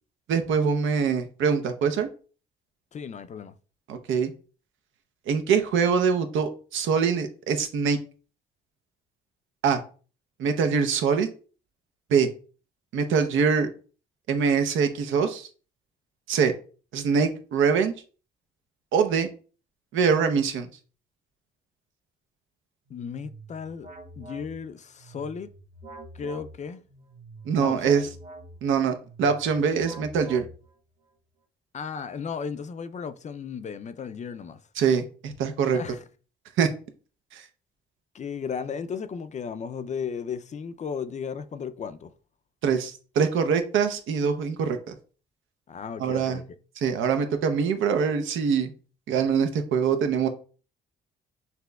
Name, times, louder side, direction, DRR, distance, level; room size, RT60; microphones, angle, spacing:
voice 1, 0.3-2.1 3.9-4.3 5.3-8.0 9.6-9.8 10.4-11.3 12.1-12.3 12.9-13.7 14.3-15.5 16.3-16.5 16.9-17.9 18.9-19.3 19.9-20.7 27.4-28.1 28.6-30.5 34.8-35.8 36.6-36.7 37.3-37.4 42.6-45.0 46.0-46.4 46.8-48.7 49.1-50.3, right 6 dB, 80° right, 0.7 m, -24 dB
voice 2, 2.9-3.5 22.9-23.9 24.2-25.5 26.1-26.8 27.6-28.0 31.7-34.6 35.7-36.0 38.1-42.1 45.7-46.4, left 6 dB, 35° left, 0.4 m, -35 dB
sound 1, 22.9-30.9, right 2 dB, 40° right, 1.3 m, -46 dB
5.9 x 2.7 x 2.3 m
cardioid pair, 90°, 20 cm